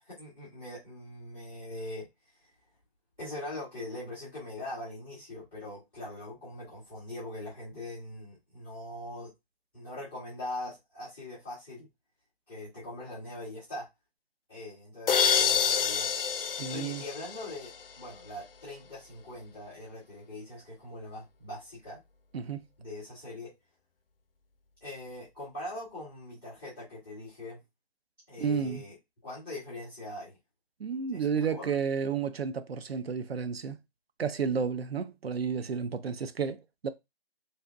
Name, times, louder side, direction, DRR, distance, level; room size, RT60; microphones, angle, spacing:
voice 1, 0.1-2.1 2.3-2.4 3.2-9.3 9.7-11.9 12.5-13.9 14.5-16.1 16.7-17.7 18.0-22.0 22.8-23.5 24.8-27.6 28.3-29.0 29.2-30.4 31.1-31.8, left 1 dB, 5° right, 0.5 m, -42 dB
sound 1, 15.1-17.9, left 7 dB, 65° left, 0.5 m, -27 dB
voice 2, 16.6-17.0 22.3-22.6 28.4-28.8 30.8-33.8 34.2-36.9, right 6 dB, 75° right, 0.6 m, -31 dB
3.4 x 2.7 x 2.4 m
figure-of-eight pair, 160°, 31 cm